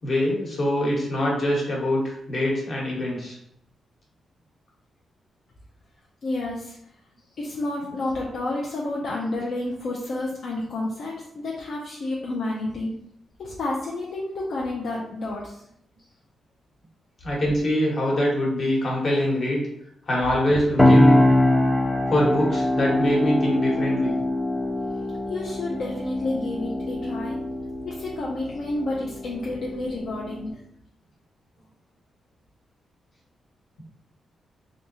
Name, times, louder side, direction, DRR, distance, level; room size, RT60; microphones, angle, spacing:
voice 1, 0.0-3.4 17.2-19.6 20.1-21.2 22.1-24.2, equal, 45° left, -3 dB, 1.2 m, -24 dB
voice 2, 6.2-6.8 7.4-12.9 13.4-15.6 25.3-27.4 27.8-30.5, left 2 dB, 65° left, -3 dB, 0.5 m, -30 dB
sound 1, 20.8-30.5, left 1 dB, 10° left, 0.5 m, -23 dB
3.5 x 2.7 x 2.7 m, 0.73 s
cardioid pair, 125°, 0 cm